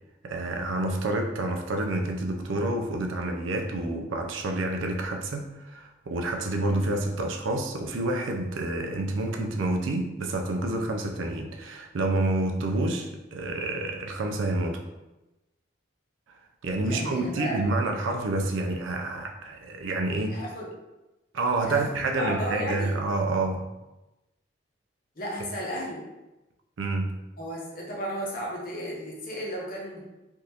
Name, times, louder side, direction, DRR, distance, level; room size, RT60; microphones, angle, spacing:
voice 1, 0.2-14.8 16.6-20.4 21.3-23.7 26.8-27.1, right 2 dB, 90° right, 3 dB, 0.4 m, -28 dB
voice 2, 16.8-17.6 20.3-20.7 21.6-23.0 25.2-26.0 27.4-30.0, equal, 45° left, -3 dB, 0.8 m, -34 dB
3.5 x 2.5 x 2.8 m, 1.0 s
head